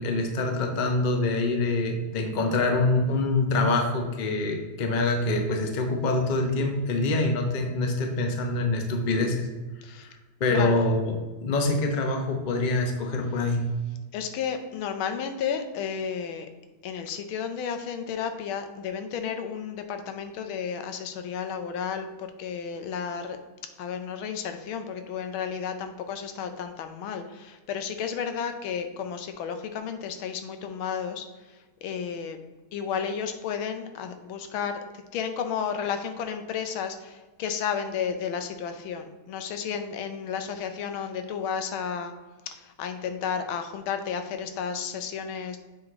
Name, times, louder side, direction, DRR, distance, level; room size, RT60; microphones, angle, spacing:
voice 1, 0.0-9.5 9.9-11.1 11.4-13.6, left 2 dB, 50° left, 3 dB, 0.5 m, -25 dB
voice 2, 10.5-10.9 14.1-16.5 16.8-23.4 23.8-31.3 31.8-32.4 32.7-42.1 42.5-45.6, left 7 dB, 90° left, 7 dB, 1.6 m, -32 dB
7.4 x 4.9 x 3.6 m, 1.2 s
omnidirectional pair, 2.2 m